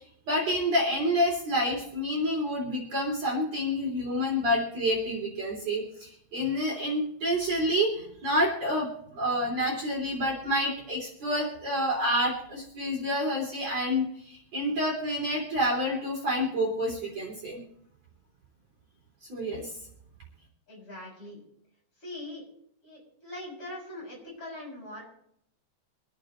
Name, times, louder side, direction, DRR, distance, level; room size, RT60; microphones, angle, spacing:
voice 1, 0.3-17.6 19.3-19.7, equal, 40° right, -3 dB, 4.1 m, -28 dB
voice 2, 20.7-21.4 22.0-22.4 22.8-25.0, left 1 dB, 30° left, -4 dB, 7.5 m, -41 dB
26.0 x 9.2 x 3.2 m, 0.70 s
omnidirectional pair, 4.8 m